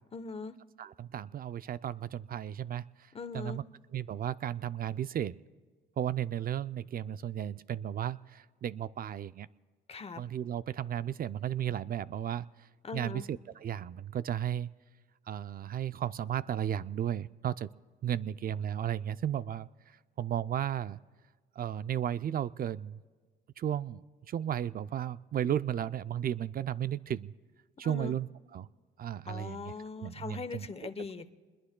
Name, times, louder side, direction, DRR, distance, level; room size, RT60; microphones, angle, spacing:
voice 1, 0.1-0.6 3.1-3.7 9.9-10.2 12.8-13.2 27.8-28.1 29.3-31.4, left 4 dB, 30° left, 11 dB, 0.9 m, -40 dB
voice 2, 0.8-2.8 3.3-3.6 3.9-5.4 6.0-9.5 10.2-12.5 12.9-14.7 15.3-17.7 18.0-19.7 20.2-21.0 21.6-23.0 23.6-27.3 27.8-28.3 28.5-28.7 29.0-29.6 30.0-30.7, right 10 dB, 45° right, 16 dB, 0.4 m, -34 dB
28.0 x 21.0 x 2.2 m, 1.4 s
cardioid pair, 90°, 20 cm